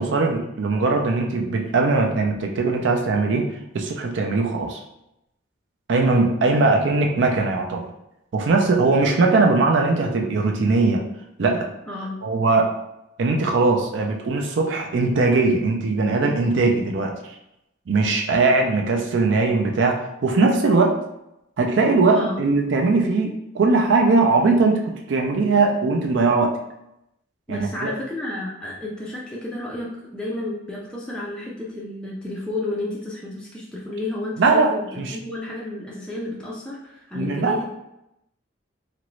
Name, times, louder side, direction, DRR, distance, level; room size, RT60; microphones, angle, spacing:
voice 1, 0.0-3.4 3.7-4.8 5.9-7.9 8.3-11.0 11.4-11.7 12.2-12.7 13.2-17.1 17.9-21.0 21.6-26.6 27.5-27.9 34.4-34.7 35.0-35.2 37.1-37.6, right 3 dB, 70° right, 2 dB, 0.4 m, -20 dB
voice 2, 11.9-12.2 22.1-22.4 27.5-37.6, left 2 dB, 5° left, -5 dB, 0.4 m, -31 dB
2.9 x 2.5 x 3.0 m, 0.83 s
head